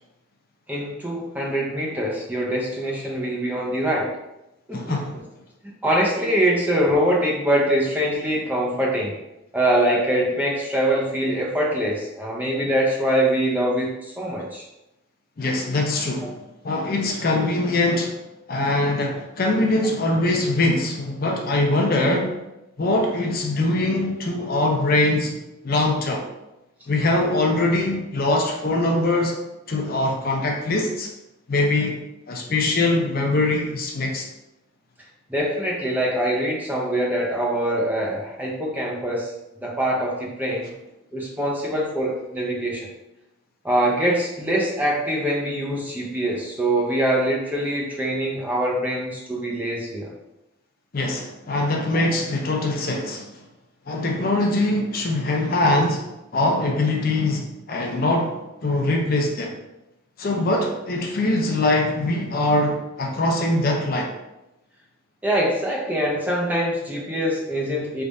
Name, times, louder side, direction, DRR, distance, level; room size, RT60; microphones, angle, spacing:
voice 1, 0.7-4.2 4.7-5.0 5.8-9.1 9.5-14.6 35.3-40.7 41.1-42.9 43.6-50.1 51.9-52.0 65.2-68.0, right 1 dB, 10° right, -3 dB, 0.6 m, -23 dB
voice 2, 4.7-5.2 15.4-16.4 16.6-18.1 18.5-22.4 22.8-26.3 26.9-29.4 29.7-31.1 31.5-32.0 32.3-34.2 50.9-53.3 53.9-59.5 60.2-64.1, left 2 dB, 45° left, 1 dB, 0.5 m, -22 dB
3.4 x 2.4 x 4.0 m, 0.93 s
head